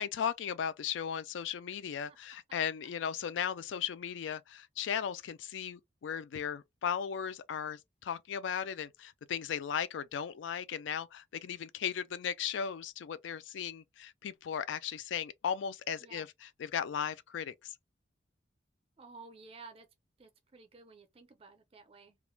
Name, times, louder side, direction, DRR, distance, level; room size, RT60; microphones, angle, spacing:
voice 1, 0.0-17.7, left 8 dB, 75° left, 0.3 m, -36 dB
voice 2, 19.0-19.9 20.2-22.2, right 4 dB, 30° right, 0.5 m, -53 dB
2.4 x 2.1 x 3.0 m
head